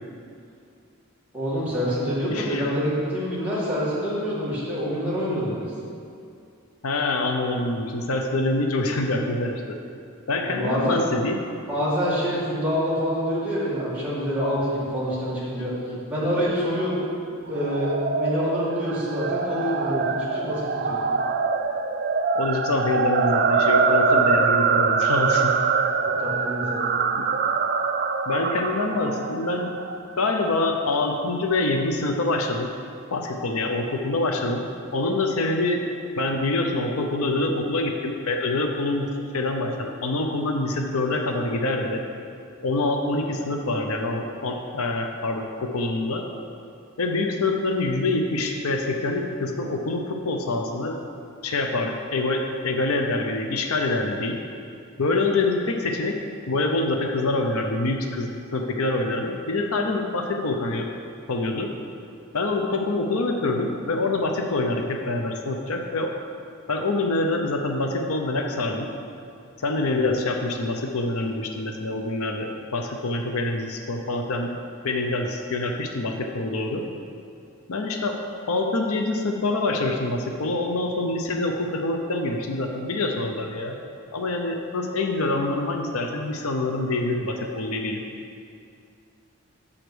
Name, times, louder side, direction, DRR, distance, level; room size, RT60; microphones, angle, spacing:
voice 1, 1.3-5.7 10.5-11.0 11.7-17.0 17.5-20.0 20.3-21.0 26.2-26.9, equal, 5° right, -10 dB, 2.0 m, -26 dB
voice 2, 2.3-2.7 6.8-9.6 10.3-11.4 15.9-16.0 22.4-25.5 28.3-29.7 30.2-32.7 33.1-35.8 36.2-39.1 39.3-42.0 42.6-46.2 47.0-51.0 51.4-54.4 55.0-56.2 56.5-60.9 61.3-61.7 62.3-66.1 66.7-68.9 69.6-74.5 74.8-76.9 77.7-78.2 78.5-83.8 84.1-88.0, left 2 dB, 80° left, 3 dB, 0.6 m, -25 dB
sound 1, 17.5-30.0, right 5 dB, 45° right, 0.3 m, -24 dB
7.1 x 5.1 x 6.1 m, 2.5 s
head